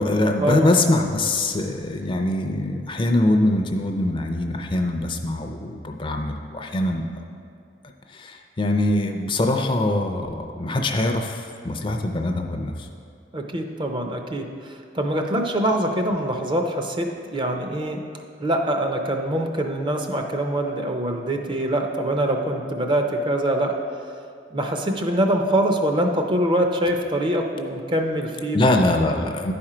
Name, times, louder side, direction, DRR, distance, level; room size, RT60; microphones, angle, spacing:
voice 1, 0.0-7.0 8.1-12.9 28.5-29.5, left 1 dB, 30° left, 4 dB, 0.5 m, -23 dB
voice 2, 13.3-18.0 18.4-23.8 24.5-28.7, right 1 dB, 30° right, 3 dB, 0.6 m, -24 dB
10.0 x 4.4 x 4.9 m, 2.3 s
head